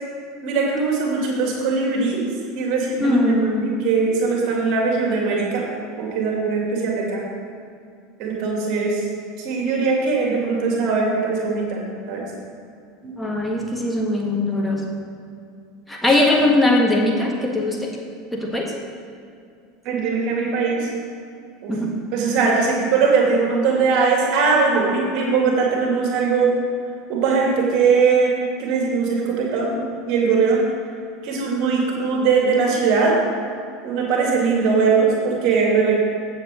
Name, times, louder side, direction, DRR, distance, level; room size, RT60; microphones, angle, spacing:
voice 1, 0.4-2.2 2.6-3.2 3.5-5.6 6.0-7.2 8.2-9.1 9.4-12.2 13.0-13.2 19.8-20.9 21.6-21.8 22.1-26.5 27.1-28.3 28.6-29.8 30.1-30.6 31.2-33.2 33.8-36.0, right 4 dB, 45° right, -1 dB, 2.7 m, -20 dB
voice 2, 3.0-3.8 13.2-14.8 15.9-17.9 18.3-18.7 21.7-21.9, left 1 dB, 5° left, -1 dB, 1.6 m, -20 dB
16.0 x 7.0 x 3.9 m, 2.4 s
figure-of-eight pair, 75°, 0 cm